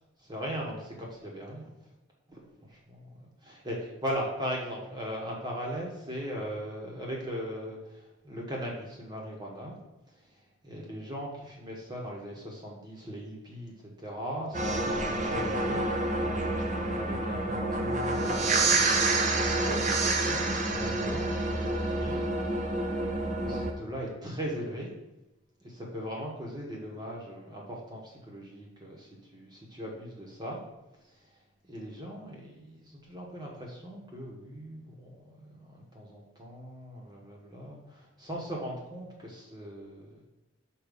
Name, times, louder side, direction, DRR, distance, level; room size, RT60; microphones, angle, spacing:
voice 1, 0.3-1.7 2.3-3.1 3.4-9.8 10.6-13.7 14.0-15.8 16.9-22.3 22.6-22.8 23.4-24.9 25.6-30.6 31.6-40.2, equal, 20° right, -2 dB, 1.3 m, -39 dB
sound 1, 14.5-23.7, right 2 dB, 40° right, 0.7 m, -28 dB
6.6 x 2.7 x 5.3 m, 0.96 s
head